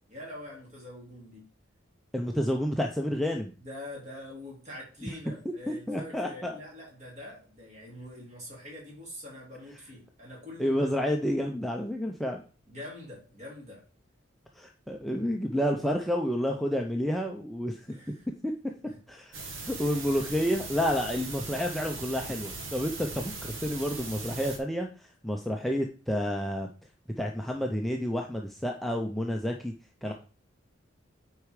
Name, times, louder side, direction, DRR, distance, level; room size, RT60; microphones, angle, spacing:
voice 1, 0.1-1.5 3.6-10.9 12.7-13.8 17.9-18.3 18.8-19.0 19.8-20.0 30.0-30.1, left 1 dB, 35° right, -3 dB, 3.8 m, -44 dB
voice 2, 2.1-3.5 5.0-5.1 5.7-6.5 10.6-12.4 14.6-17.9 18.4-18.5 19.1-26.7 27.2-29.7 30.0-30.1, equal, ahead, 1 dB, 0.6 m, -30 dB
sound 1, 19.3-24.6, right 3 dB, 85° right, 2.1 m, -39 dB
8.4 x 4.7 x 4.9 m, 0.37 s
head